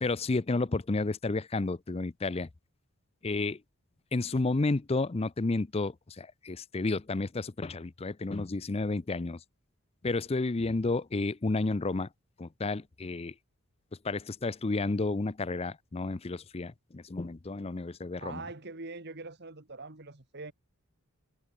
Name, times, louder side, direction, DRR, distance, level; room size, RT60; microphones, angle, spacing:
voice 1, 0.0-2.5 3.2-3.6 4.1-9.4 10.0-12.1 12.4-13.3 14.0-18.4, left 3 dB, 30° left, 0.5 m, -31 dB
voice 2, 18.2-20.5, right 3 dB, 50° right, 2.0 m, -43 dB
head